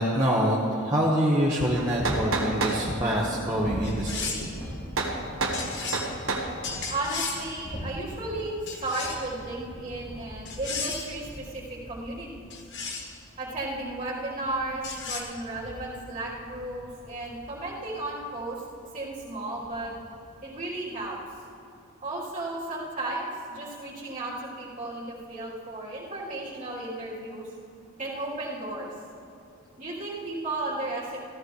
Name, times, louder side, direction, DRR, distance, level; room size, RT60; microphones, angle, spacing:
voice 1, 0.0-4.3, equal, 20° right, -6 dB, 1.2 m, -25 dB
sound 1, 1.7-2.8 5.0-5.2 5.4-5.6 5.9-6.5, right 3 dB, 65° right, 1.5 m, -28 dB
sound 2, 1.9-21.4, equal, 15° left, 2.6 m, -42 dB
sound 3, 3.8-4.6 5.5-6.1 6.6-7.5 8.7-9.3 10.4-11.1 12.5-13.1 14.8-15.2, left 4 dB, 55° left, 1.4 m, -34 dB
voice 2, 6.9-12.5 13.4-18.6 18.9-19.9 20.4-21.2 22.0-27.5 28.0-28.9 29.8-31.2, right 2 dB, 35° right, -8 dB, 3.3 m, -34 dB
16.0 x 14.5 x 3.2 m, 2.6 s
head